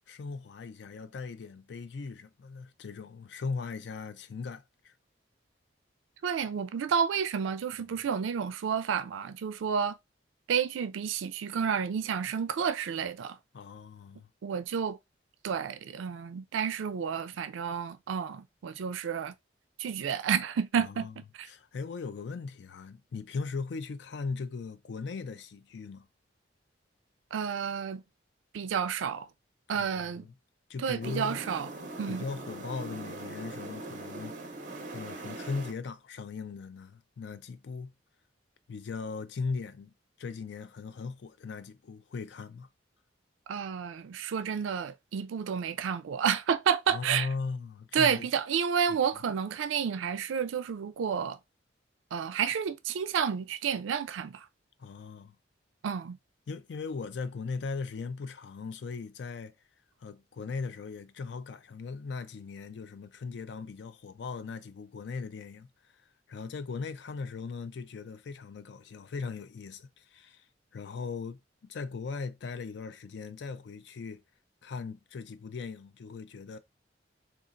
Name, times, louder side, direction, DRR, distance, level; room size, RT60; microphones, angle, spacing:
voice 1, 0.1-4.9 13.5-14.3 20.8-21.2 21.5-26.1 29.7-30.3 30.7-31.4 32.1-34.4 34.9-37.9 38.7-42.7 46.9-48.3 48.9-49.0 54.8-55.3 56.5-59.6 60.0-66.0 66.3-70.5 70.7-74.2 74.6-76.6, left 4 dB, 65° left, 0.4 m, -39 dB
voice 2, 6.2-10.0 10.5-13.4 14.4-15.0 15.4-19.3 19.8-21.5 27.3-28.0 28.5-29.3 29.7-30.2 30.8-31.7 32.0-32.2 43.5-47.3 47.9-51.4 52.1-54.5 55.8-56.2, right 7 dB, 85° right, 0.4 m, -30 dB
sound 1, 31.0-35.7, right 2 dB, 40° right, 0.6 m, -41 dB
3.8 x 2.4 x 2.5 m
head